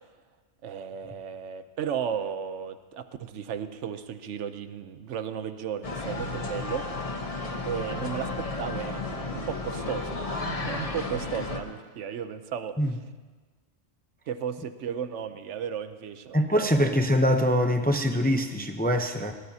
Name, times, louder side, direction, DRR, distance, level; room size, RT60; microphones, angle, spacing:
voice 1, 0.6-6.9 7.6-13.0 14.3-17.0, right 8 dB, 85° right, 10 dB, 1.1 m, -35 dB
sound 1, 5.8-11.6, left 3 dB, 30° left, 1.1 m, -33 dB
voice 2, 16.3-19.3, equal, 10° left, 5 dB, 0.5 m, -23 dB
22.5 x 18.0 x 2.8 m, 1.4 s
omnidirectional pair, 1.2 m